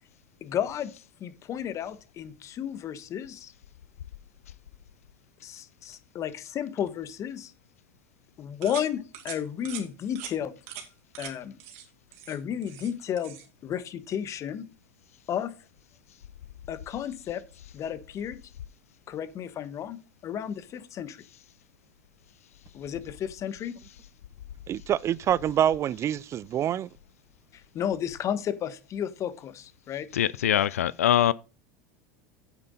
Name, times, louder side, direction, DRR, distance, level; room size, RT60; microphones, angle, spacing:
voice 1, 0.4-0.9 1.2-3.5 5.4-7.5 8.4-10.5 11.2-11.6 12.3-13.4 13.6-14.7 15.3-15.5 16.7-17.4 17.7-18.4 19.1-21.2 22.7-23.8 27.5-30.1, left 9 dB, 40° left, 1.3 m, -33 dB
sound 1, 8.6-8.9 9.1-9.4 9.6-9.8 10.2-10.3 10.7-10.9 11.1-11.3 11.6-11.8 12.1-12.9 13.2-13.5, right 10 dB, 65° right, 2.6 m, -41 dB
voice 2, 24.7-26.9, right 10 dB, 40° right, 0.4 m, -26 dB
voice 3, 30.1-31.3, left 11 dB, 85° left, 0.4 m, -23 dB
9.2 x 8.9 x 4.0 m
hypercardioid pair, 85°, 8 cm